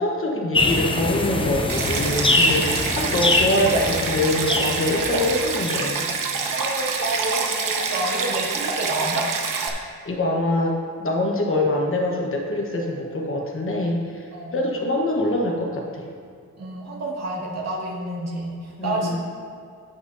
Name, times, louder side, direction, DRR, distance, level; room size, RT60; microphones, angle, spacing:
voice 1, 0.0-6.1 10.0-16.1 18.8-19.2, left 1 dB, 40° left, 0 dB, 1.1 m, -24 dB
sound 1, 0.5-5.9, left 2 dB, 15° left, 0.6 m, -23 dB
Stream, 1.7-9.7, right 4 dB, 80° right, 1.0 m, -26 dB
voice 2, 6.5-9.3 14.3-14.7 16.6-19.2, right 1 dB, 55° right, -4 dB, 2.1 m, -29 dB
17.5 x 6.0 x 2.7 m, 2.3 s
wide cardioid pair, 160°, 32 cm